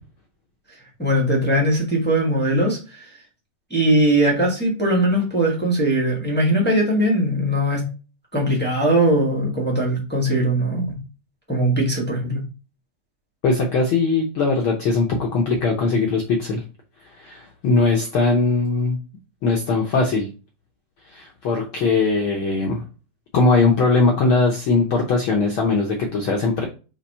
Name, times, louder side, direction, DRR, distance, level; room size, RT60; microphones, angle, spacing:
voice 1, 1.0-3.1 3.7-7.8 8.3-11.0 11.5-12.4, right 1 dB, 15° left, -3 dB, 0.3 m, -20 dB
voice 2, 13.4-16.6 17.1-19.0 19.4-20.3 21.1-22.8 23.3-26.7, left 3 dB, 75° left, 1 dB, 1.2 m, -20 dB
5.6 x 3.0 x 5.5 m, 0.33 s
omnidirectional pair, 3.4 m